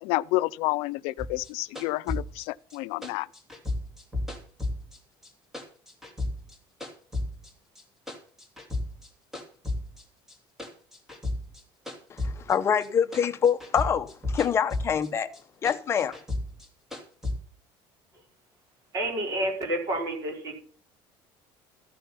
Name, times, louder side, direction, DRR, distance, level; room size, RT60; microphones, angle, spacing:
voice 1, 0.0-3.3, left 20 dB, 75° left, 0.6 m, -29 dB
sound 1, 1.2-5.3 5.5-7.5 7.8-9.1 9.3-12.9 13.1-15.1 15.3-17.3, left 2 dB, 5° right, 2.8 m, -33 dB
voice 2, 12.1-15.3 15.6-16.2, left 7 dB, 25° left, 1.0 m, -25 dB
voice 3, 18.9-20.6, right 1 dB, 35° right, 5.0 m, -29 dB
14.5 x 8.9 x 5.8 m
cardioid pair, 165°, 10 cm